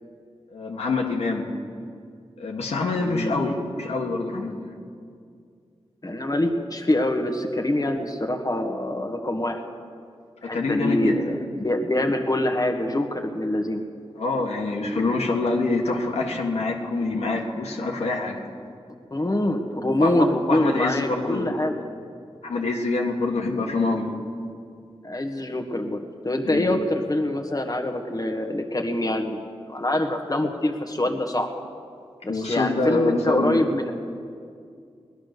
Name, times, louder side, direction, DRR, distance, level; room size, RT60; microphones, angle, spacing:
voice 1, 0.5-1.5 2.4-4.7 10.4-11.4 14.2-18.4 20.0-21.6 22.4-24.1 26.4-26.7 32.3-33.6, left 3 dB, 90° left, -1 dB, 1.8 m, -26 dB
voice 2, 3.0-3.3 6.0-9.6 10.4-13.8 19.1-21.8 25.0-29.4 29.7-31.5 32.2-33.9, left 1 dB, 35° left, 4 dB, 1.6 m, -25 dB
18.5 x 11.0 x 6.7 m, 2.3 s
cardioid pair, 50°, 11 cm